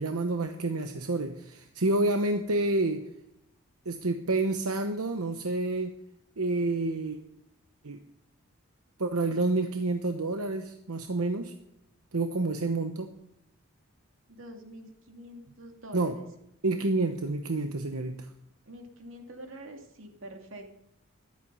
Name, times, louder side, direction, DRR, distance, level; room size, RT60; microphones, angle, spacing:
voice 1, 0.0-3.1 3.9-6.0 6.4-7.2 7.8-8.0 9.0-11.5 12.1-13.1 15.9-16.2 16.6-18.3, right 2 dB, 90° right, 6 dB, 1.0 m, -29 dB
voice 2, 14.3-16.3 18.7-20.7, right 1 dB, 65° right, 3 dB, 2.6 m, -46 dB
14.5 x 12.0 x 5.5 m, 0.80 s
head